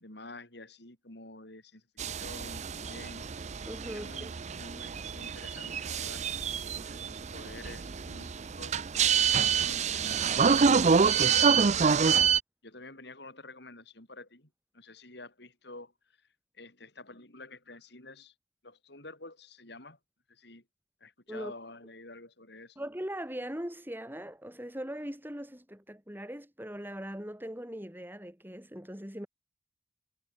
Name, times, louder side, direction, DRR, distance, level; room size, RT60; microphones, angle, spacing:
voice 1, 0.0-3.3 3.8-6.2 6.7-8.8 9.4-12.0 12.6-16.2 16.5-18.3 18.6-20.0 20.3-20.6 21.0-22.8, left 2 dB, 65° left, 7.7 m, -49 dB
sound 1, 2.0-12.4, right 6 dB, 40° right, 0.5 m, -27 dB
voice 2, 3.7-4.3 21.3-21.5 22.8-29.3, equal, 10° right, 6.3 m, -40 dB
head